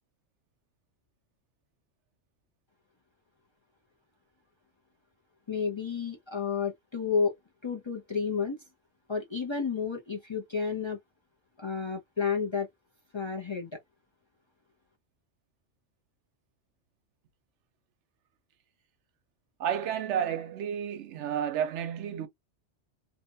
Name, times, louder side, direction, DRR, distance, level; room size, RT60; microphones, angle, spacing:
voice 1, 5.5-7.3 7.6-8.6 9.1-11.0 11.6-12.7 13.1-13.7, left 5 dB, 35° left, 0.4 m, -31 dB
voice 2, 19.6-22.3, right 9 dB, 90° right, 0.9 m, -31 dB
2.7 x 2.2 x 2.6 m
omnidirectional pair, 1.2 m